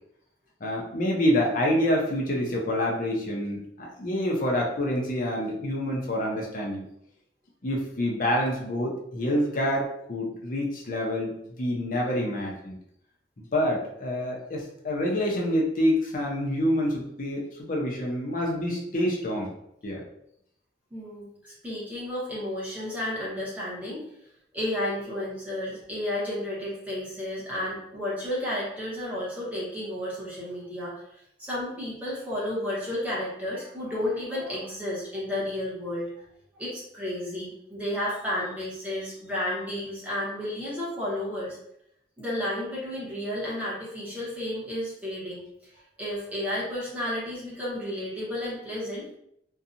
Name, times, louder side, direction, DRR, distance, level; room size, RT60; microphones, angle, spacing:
voice 1, 0.6-6.8 7.6-12.8 13.4-19.5 19.8-20.0, equal, 45° left, -2 dB, 0.5 m, -27 dB
voice 2, 20.9-24.0 24.5-36.1 36.6-41.6 42.2-45.4 46.0-49.0, left 1 dB, 10° right, -7 dB, 0.9 m, -32 dB
2.7 x 2.2 x 2.5 m, 0.74 s
head